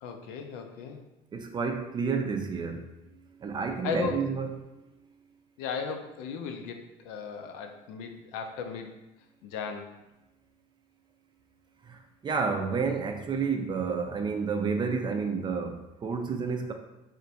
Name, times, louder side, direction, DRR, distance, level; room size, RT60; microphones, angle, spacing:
voice 1, 0.0-1.0 3.8-4.2 5.6-9.0 9.4-9.9, left 5 dB, 85° left, 5 dB, 0.4 m, -36 dB
voice 2, 1.3-2.9 3.4-4.5 11.9-16.7, right 5 dB, 30° right, 5 dB, 0.4 m, -30 dB
2.5 x 2.1 x 4.0 m, 0.97 s
supercardioid pair, 90°, 16 cm